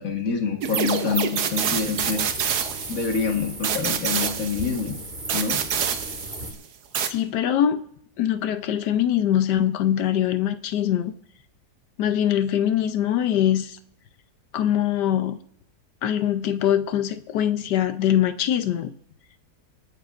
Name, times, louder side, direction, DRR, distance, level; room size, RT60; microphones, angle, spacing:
voice 1, 0.0-2.2 2.9-5.0 5.3-5.6, left 5 dB, 55° left, 3 dB, 1.9 m, -26 dB
sound 1, 0.6-3.2 3.6-4.9 5.3-6.6 6.9-7.1, right 8 dB, 70° right, 1.4 m, -27 dB
sound 2, 1.5-6.5, right 1 dB, 30° right, 2.1 m, -37 dB
voice 2, 7.1-7.8 8.2-11.1 12.0-13.8 14.5-15.4 16.0-18.9, left 10 dB, 80° left, 11 dB, 1.3 m, -23 dB
27.5 x 9.3 x 2.5 m, 0.70 s
omnidirectional pair, 1.8 m